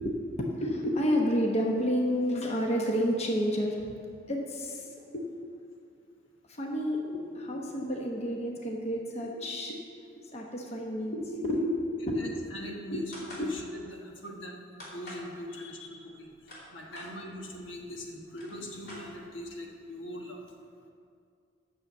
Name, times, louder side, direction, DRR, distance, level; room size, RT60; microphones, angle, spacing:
voice 1, 0.0-3.9 4.3-5.4 6.5-9.8 10.3-12.4 12.7-13.1 13.3-13.6 15.6-16.0, equal, 35° left, 0 dB, 1.0 m, -30 dB
voice 2, 12.2-13.0 13.4-16.3 16.7-20.4, equal, 75° left, 1 dB, 1.3 m, -42 dB
sound 1, 13.1-13.5 14.8-15.3 16.2-17.1 17.9-18.0 18.3-19.5, left 1 dB, 55° left, 3.0 m, -46 dB
8.7 x 6.6 x 7.3 m, 2.4 s
head